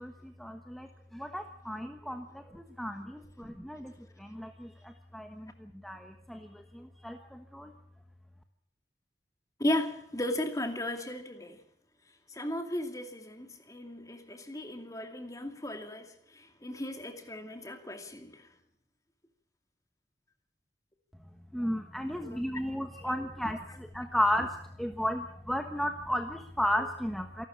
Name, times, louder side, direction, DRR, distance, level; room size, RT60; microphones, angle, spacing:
voice 1, 0.0-7.7 21.5-27.5, equal, ahead, 5 dB, 1.2 m, -34 dB
voice 2, 9.6-11.6 12.3-18.5 22.3-22.4 23.0-23.1, left 1 dB, 20° left, 6 dB, 2.4 m, -36 dB
27.0 x 12.5 x 8.6 m, 0.71 s
head